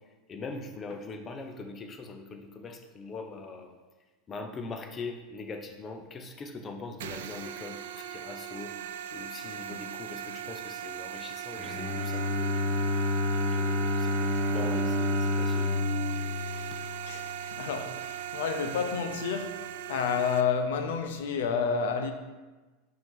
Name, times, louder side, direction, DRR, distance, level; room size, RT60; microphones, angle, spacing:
voice 1, 0.3-3.7 4.3-8.7 9.1-12.9 13.4-15.7, left 3 dB, 20° left, 0.5 m, -42 dB
sound 1, 7.0-20.4, right 11 dB, 85° right, 0.4 m, -39 dB
Bowed string instrument, 11.5-17.5, left 1 dB, 30° right, 1.1 m, -29 dB
voice 2, 17.0-22.1, left 6 dB, 80° left, 0.7 m, -30 dB
5.5 x 5.4 x 3.7 m
supercardioid pair, 165°, 0 cm